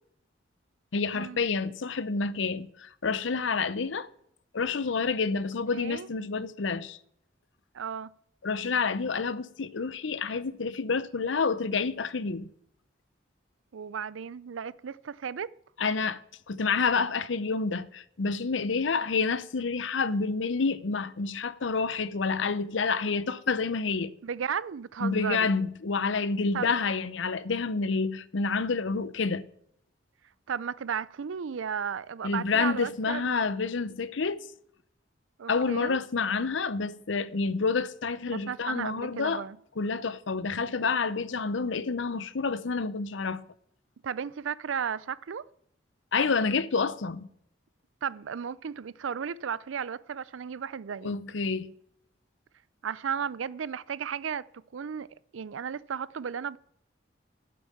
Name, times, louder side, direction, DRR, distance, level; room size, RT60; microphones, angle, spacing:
voice 1, 0.9-4.1 4.5-7.0 8.4-12.5 15.8-16.2 16.5-24.1 25.0-29.4 32.2-34.5 35.5-39.4 39.8-43.4 46.1-47.3 51.0-51.7, left 4 dB, 80° left, 0.7 m, -28 dB
voice 2, 5.7-6.1 7.7-8.1 13.7-15.5 24.2-25.5 26.5-26.7 30.5-33.4 35.4-36.0 38.3-39.6 44.0-45.5 48.0-51.2 52.8-54.4 54.7-55.1 55.3-56.6, right 7 dB, 90° right, 0.5 m, -34 dB
9.1 x 7.7 x 8.6 m
head